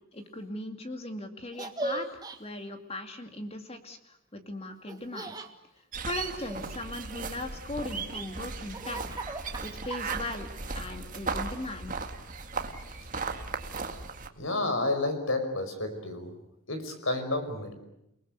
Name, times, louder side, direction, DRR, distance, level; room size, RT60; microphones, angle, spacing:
voice 1, 0.1-4.0 4.3-5.3 6.0-9.2 9.6-10.5 10.7-11.9, left 1 dB, 25° left, 6 dB, 2.5 m, -38 dB
Laughter, 1.5-2.4 4.9-5.5 6.1-7.3 7.9-10.5, right 2 dB, 15° right, 1.6 m, -39 dB
sound 1, 5.9-14.3, right 4 dB, 35° right, 1.9 m, -37 dB
voice 2, 14.4-16.3 16.7-17.7, left 2 dB, 65° left, 7 dB, 5.4 m, -30 dB
29.0 x 19.5 x 8.2 m, 0.81 s
head